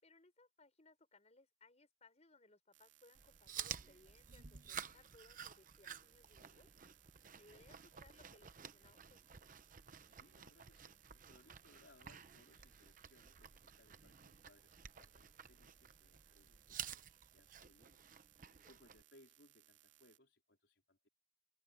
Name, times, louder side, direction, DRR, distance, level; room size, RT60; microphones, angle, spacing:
voice 1, 0.0-6.7 7.3-9.2 18.3-18.7, left 2 dB, 35° left, 6.2 m, -67 dB
sound 1, 2.7-20.2, right 13 dB, 85° right, 2.9 m, -69 dB
Chewing mastication, 3.1-19.0, right 8 dB, 45° right, 0.9 m, -52 dB
voice 2, 10.1-18.1 18.7-21.1, left 1 dB, 70° left, 4.2 m, -69 dB
head